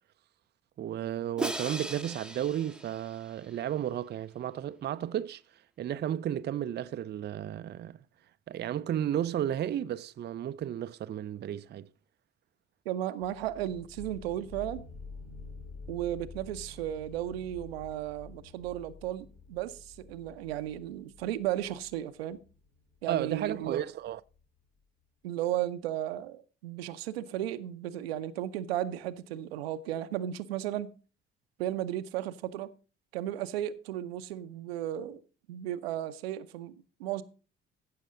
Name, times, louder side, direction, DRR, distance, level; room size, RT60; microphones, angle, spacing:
voice 1, 0.8-5.4 5.8-8.0 8.5-11.9 23.1-24.2, right 11 dB, 35° right, 0.5 m, -33 dB
Crash cymbal, 1.4-3.6, right 2 dB, 5° right, 0.9 m, -38 dB
voice 2, 12.9-14.8 15.9-22.4 23.0-23.8 25.2-30.9 31.6-32.7 33.1-35.2 35.5-37.2, right 12 dB, 75° right, 0.7 m, -35 dB
sound 1, 13.2-24.6, left 4 dB, 50° left, 5.6 m, -49 dB
15.5 x 6.4 x 3.7 m
figure-of-eight pair, 45°, 31 cm